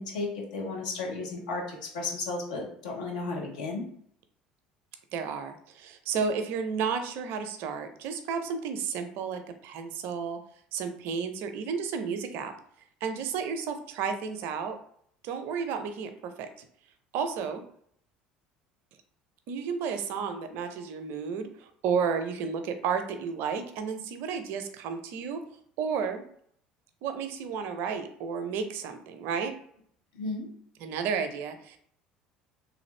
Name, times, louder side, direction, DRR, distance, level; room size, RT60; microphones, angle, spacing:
voice 1, 0.0-3.8 30.1-30.5, left 3 dB, 75° left, -1 dB, 1.0 m, -34 dB
voice 2, 5.1-10.4 10.7-12.5 13.0-14.8 15.2-16.7 17.1-17.6 19.5-25.4 25.8-26.2 27.0-29.5 30.8-31.8, right 6 dB, 60° right, 7 dB, 0.5 m, -32 dB
3.2 x 2.5 x 3.1 m, 0.65 s
hypercardioid pair, 65°, 4 cm